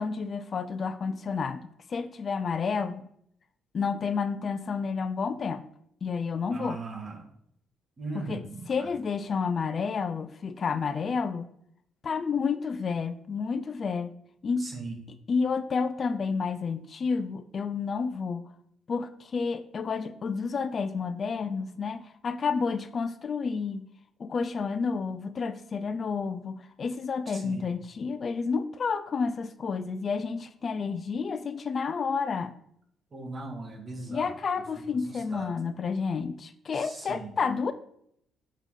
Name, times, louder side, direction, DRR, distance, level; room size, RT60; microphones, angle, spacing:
voice 1, 0.0-3.0 3.7-5.6 6.0-6.8 8.1-11.5 12.0-14.1 14.4-14.7 15.3-18.4 18.9-23.8 24.2-32.5 34.1-37.7, left 5 dB, 45° left, 11 dB, 0.4 m, -30 dB
voice 2, 6.5-7.3 8.0-8.9 14.6-15.0 27.3-27.6 33.1-34.3 35.1-35.5 36.7-37.3, right 3 dB, 40° right, 1 dB, 1.7 m, -39 dB
6.6 x 3.8 x 4.8 m, 0.70 s
cardioid pair, 90°, 0 cm